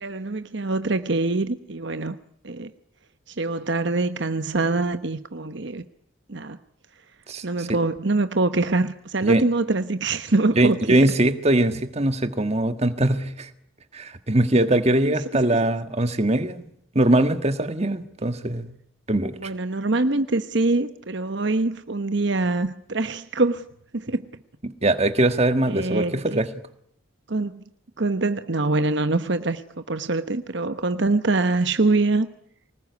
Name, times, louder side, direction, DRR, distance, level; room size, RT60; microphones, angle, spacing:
voice 1, 0.0-2.2 2.4-2.7 3.3-5.8 6.3-6.6 7.4-11.1 15.0-15.4 19.4-23.6 23.9-24.3 25.7-26.4 27.3-27.6 28.0-32.3, right 2 dB, 60° right, 1.0 m, -24 dB
voice 2, 7.3-7.7 9.2-9.4 10.6-13.5 13.9-16.6 16.9-18.7 19.1-19.5 24.6-26.5, right 1 dB, 30° right, 1.6 m, -22 dB
25.0 x 20.0 x 9.5 m
head